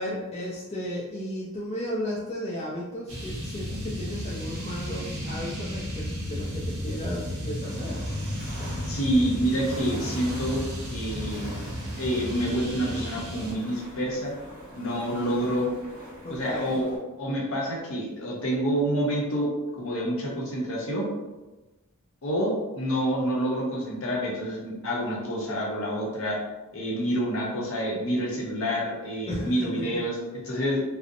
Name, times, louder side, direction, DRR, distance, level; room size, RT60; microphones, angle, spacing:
voice 1, 0.0-8.0 16.2-16.8 29.3-29.9, equal, 30° left, -5 dB, 0.3 m, -34 dB
sound 1, 3.1-13.5, equal, 70° right, 0.8 m, -33 dB
sound 2, 7.6-17.0, equal, 40° right, 0.7 m, -44 dB
voice 2, 8.9-10.6 10.9-11.6 12.0-14.3 14.7-15.7 16.3-19.5 19.8-21.1 22.2-26.4 26.7-30.8, equal, 65° left, -3 dB, 0.7 m, -28 dB
2.7 x 2.0 x 2.5 m, 1.1 s
head